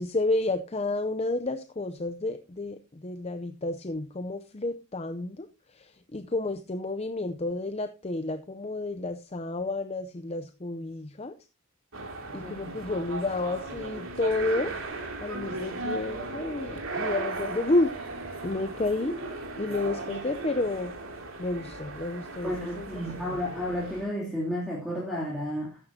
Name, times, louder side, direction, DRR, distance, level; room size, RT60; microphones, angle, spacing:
voice 1, 0.0-11.3 12.3-14.7 15.2-17.9 18.4-19.2 19.6-20.9 21.4-23.4, left 2 dB, 30° left, 9 dB, 0.6 m, -31 dB
sound 1, 11.9-24.1, right 2 dB, 70° right, 2.6 m, -37 dB
voice 2, 12.4-12.7 22.4-25.8, equal, ahead, -5 dB, 3.1 m, -32 dB
14.0 x 9.7 x 2.8 m, 0.29 s
head